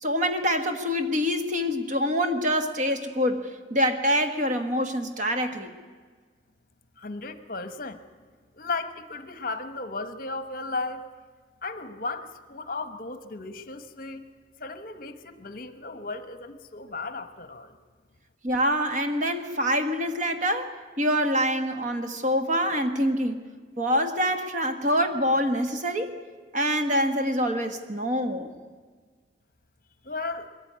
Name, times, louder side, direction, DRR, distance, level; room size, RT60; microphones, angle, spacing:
voice 1, 0.0-5.7 18.4-23.4 23.8-26.1 26.5-28.5, equal, 45° right, 7 dB, 1.6 m, -25 dB
voice 2, 7.0-8.0 8.5-11.0 11.6-14.2 14.6-17.8 30.0-30.5, left 3 dB, 50° left, 10 dB, 1.1 m, -35 dB
21.5 x 14.5 x 9.5 m, 1.5 s
head